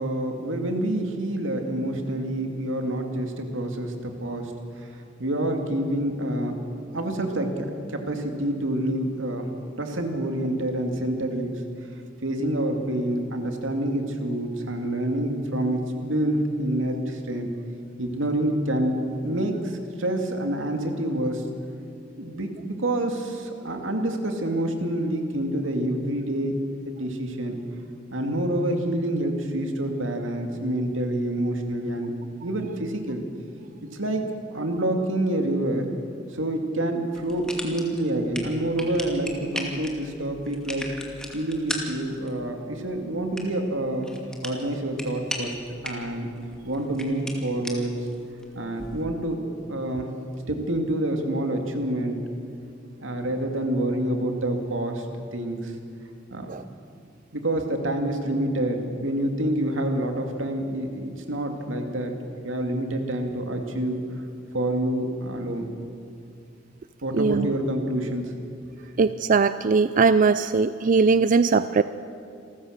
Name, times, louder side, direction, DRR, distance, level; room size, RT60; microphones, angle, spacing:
voice 1, 0.0-4.5 4.8-4.9 5.2-6.6 6.9-9.5 9.8-11.6 12.2-17.5 18.0-21.4 22.2-26.6 26.8-27.6 28.1-32.1 32.4-33.2 33.9-34.2 34.5-35.9 36.3-40.9 41.3-44.1 44.4-45.6 45.8-46.3 46.6-48.0 48.5-50.1 50.5-52.2 53.0-55.1 55.3-55.7 56.3-56.5 57.3-62.1 62.4-64.0 64.5-65.7 67.0-68.3 68.6-68.7, right 1 dB, 85° right, 4 dB, 2.4 m, -27 dB
sound 1, 37.1-49.0, left 1 dB, 5° left, 2.4 m, -38 dB
voice 2, 67.1-67.5 69.0-71.8, right 4 dB, 45° right, 13 dB, 0.4 m, -20 dB
27.5 x 14.5 x 6.6 m, 2.4 s
head